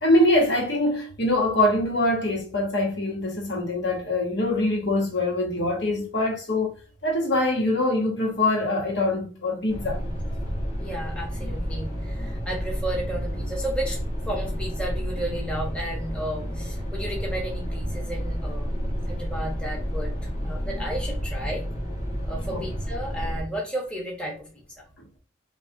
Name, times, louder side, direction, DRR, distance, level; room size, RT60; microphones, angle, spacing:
voice 1, 0.0-6.7 7.0-10.0 22.5-22.6 25.0-25.1, left 1 dB, 70° left, 1.2 m, -23 dB
sound 1, 9.7-23.4, equal, 40° left, 1.7 m, -30 dB
voice 2, 10.8-14.0 14.3-18.8 19.1-20.1 20.4-21.6 22.3-24.5, right 1 dB, 5° left, 1.1 m, -33 dB
5.6 x 2.4 x 2.8 m
head